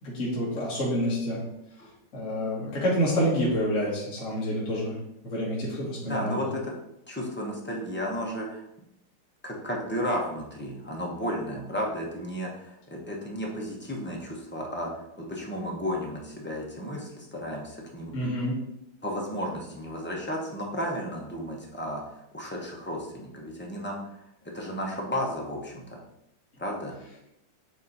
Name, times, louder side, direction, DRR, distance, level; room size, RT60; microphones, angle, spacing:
voice 1, 0.0-1.4 1.8-5.0 5.2-6.5 18.1-18.6, equal, 45° left, -7 dB, 1.8 m, -28 dB
voice 2, 6.0-6.6 7.1-8.6 9.4-15.0 15.3-18.1 19.0-22.0 22.3-24.0 24.5-26.0 26.6-26.9, equal, 10° left, -2 dB, 0.7 m, -33 dB
8.4 x 3.0 x 4.1 m, 0.79 s
omnidirectional pair, 2.0 m